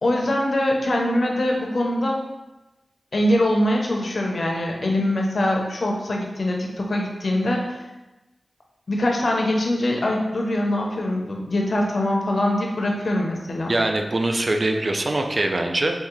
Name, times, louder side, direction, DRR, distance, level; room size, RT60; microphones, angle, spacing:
voice 1, 0.0-2.2 3.1-7.8 8.9-13.7, left 1 dB, 55° left, 0 dB, 0.6 m, -23 dB
voice 2, 13.7-16.0, right 2 dB, 45° right, 4 dB, 0.4 m, -23 dB
3.6 x 2.7 x 3.0 m, 1.1 s
wide cardioid pair, 85°, 0 cm